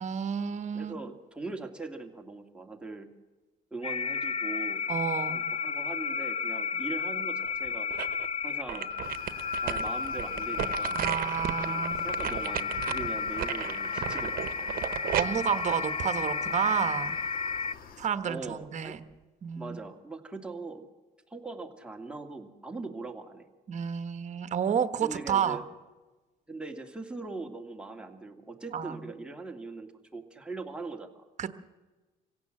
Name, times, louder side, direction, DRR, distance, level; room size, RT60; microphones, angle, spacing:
voice 1, 0.0-1.0 4.9-5.4 10.9-12.0 15.1-17.1 18.0-19.0 19.4-19.8 23.7-25.6 28.7-29.0 31.4-31.5, right 8 dB, 45° right, 11 dB, 1.3 m, -30 dB
voice 2, 0.7-3.1 3.7-4.8 5.3-7.9 8.4-8.9 9.5-11.0 11.6-14.9 18.2-19.0 19.6-20.9 21.3-23.5 25.0-25.6 26.5-31.2, right 3 dB, 5° right, 3 dB, 2.1 m, -41 dB
sound 1, 3.8-17.7, left 5 dB, 35° left, 0.6 m, -33 dB
sound 2, 7.4-8.3 8.7-16.7 17.2-17.3, right 12 dB, 60° right, 1.0 m, -35 dB
sound 3, 9.0-18.1, left 7 dB, 60° left, 1.4 m, -49 dB
26.0 x 16.5 x 7.7 m, 1.2 s
cardioid pair, 110°, 17 cm